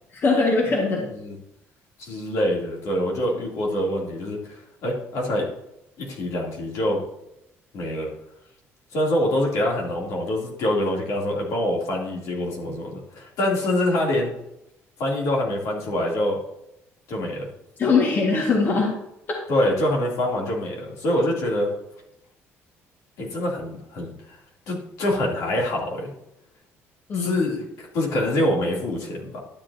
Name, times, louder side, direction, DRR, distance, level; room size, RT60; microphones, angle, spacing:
voice 1, 0.1-1.1 17.8-19.0 27.1-27.3, left 4 dB, 40° left, -1 dB, 1.8 m, -21 dB
voice 2, 2.0-5.5 6.0-7.0 7.7-8.1 8.9-14.3 15.0-16.4 17.1-17.5 19.5-21.7 23.2-24.1 24.7-26.1 27.2-29.4, left 1 dB, 75° left, -3 dB, 3.0 m, -25 dB
11.5 x 7.7 x 2.8 m, 0.84 s
cardioid pair, 115°, 5 cm